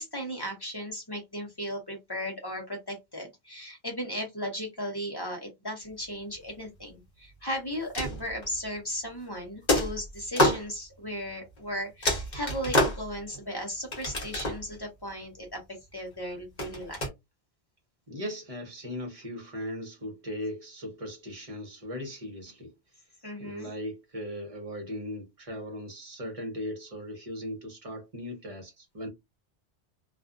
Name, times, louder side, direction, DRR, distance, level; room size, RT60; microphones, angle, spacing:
voice 1, 0.0-17.1 23.2-23.7, equal, 25° left, 0.8 m, -36 dB
sound 1, 7.7-8.6 9.7-10.7 11.6-11.7 12.0-13.4 13.9-14.8 16.6-17.1, left 1 dB, 45° left, 1.1 m, -28 dB
voice 2, 18.1-22.7 23.4-29.1, left 1 dB, 35° right, 1.0 m, -38 dB
2.5 x 2.4 x 2.4 m
omnidirectional pair, 1.0 m